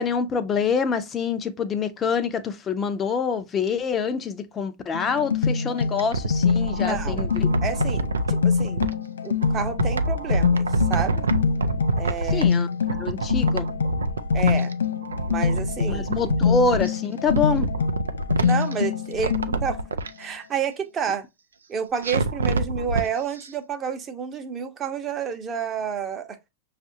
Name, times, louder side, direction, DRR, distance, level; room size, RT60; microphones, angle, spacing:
voice 1, 0.0-7.5 12.3-12.7 13.0-13.7 15.9-17.7, left 5 dB, 25° left, 0.6 m, -26 dB
sound 1, 4.9-19.8, left 5 dB, 85° left, 0.4 m, -25 dB
sound 2, 5.8-8.9 9.4-12.6 12.9-14.7 15.0-16.9 17.2-18.7 19.1-20.1 22.0-23.1 23.4-23.5, right 2 dB, 90° right, 0.4 m, -27 dB
voice 2, 6.5-7.2 7.6-8.9 9.2-11.3 12.0-12.5 14.3-14.7 15.3-16.5 18.4-19.8 20.2-21.3 21.7-26.4, right 7 dB, 30° right, 0.8 m, -30 dB
6.1 x 2.5 x 2.6 m
hypercardioid pair, 105°, 0 cm